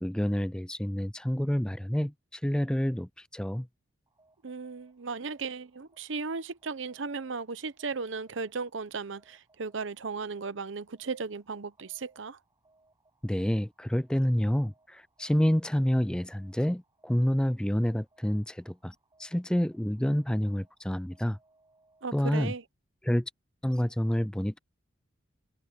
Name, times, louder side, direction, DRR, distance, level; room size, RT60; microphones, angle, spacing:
voice 1, 0.0-3.7 13.2-18.9 19.2-21.4 22.1-22.5 23.0-23.3 23.6-24.6, equal, 5° left, 0.4 m, -28 dB
sound 1, 4.1-22.5, right 2 dB, 20° right, 7.2 m, -69 dB
voice 2, 4.4-12.4 22.0-22.6, right 4 dB, 75° right, 0.8 m, -36 dB
head